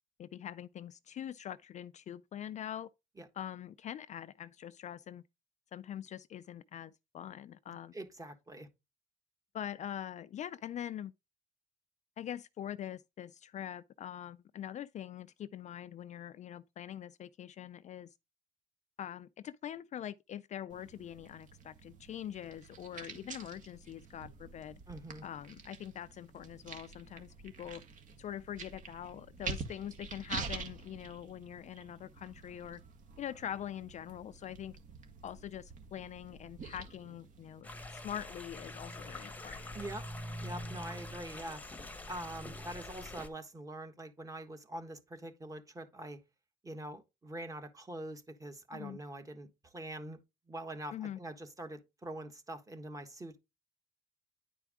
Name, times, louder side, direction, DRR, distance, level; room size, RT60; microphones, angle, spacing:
voice 1, 0.2-2.9 3.3-5.2 5.7-7.9 9.5-11.1 12.2-18.1 19.0-24.8 25.2-27.8 28.2-32.8 33.2-34.8 35.2-39.7 48.7-49.0 50.9-51.2, left 10 dB, 45° left, 0.4 m, -43 dB
voice 2, 7.9-8.7 24.9-25.2 39.7-40.1 40.4-41.6 42.1-46.2 46.6-50.2 50.5-53.4, right 1 dB, 20° right, 1.4 m, -44 dB
sound 1, 20.7-37.6, right 5 dB, 50° right, 1.6 m, -47 dB
sound 2, 37.6-43.3, left 1 dB, 10° left, 1.1 m, -44 dB
10.0 x 4.6 x 3.6 m
cardioid pair, 110°, 17 cm